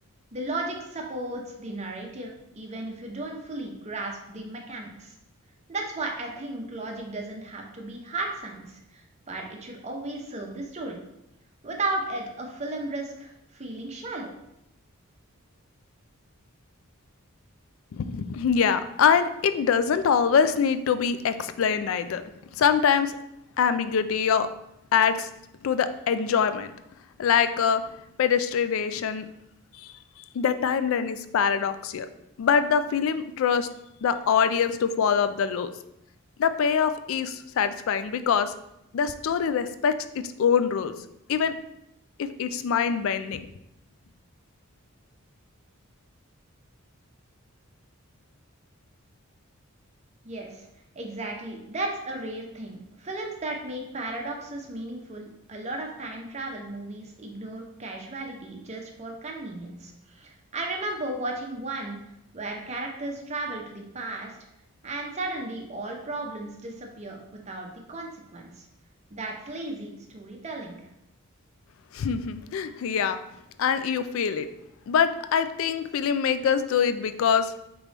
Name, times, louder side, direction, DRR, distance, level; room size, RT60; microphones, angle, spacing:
voice 1, 0.3-5.1 5.7-9.0 9.3-11.0 11.6-14.3 50.2-50.7 51.0-62.0 62.3-64.4 64.8-68.7 69.1-70.8, right 2 dB, 30° right, 1 dB, 0.7 m, -35 dB
voice 2, 17.9-22.2 22.5-23.2 23.6-24.5 24.9-25.3 25.6-26.7 27.2-27.8 28.2-29.3 29.8-29.9 30.3-32.1 32.4-33.7 34.0-35.7 36.4-38.5 38.9-40.9 41.3-41.5 42.2-43.4 71.9-73.2 73.6-74.5 74.9-77.5, left 7 dB, 65° left, 12 dB, 0.3 m, -24 dB
5.1 x 3.0 x 3.2 m, 0.83 s
head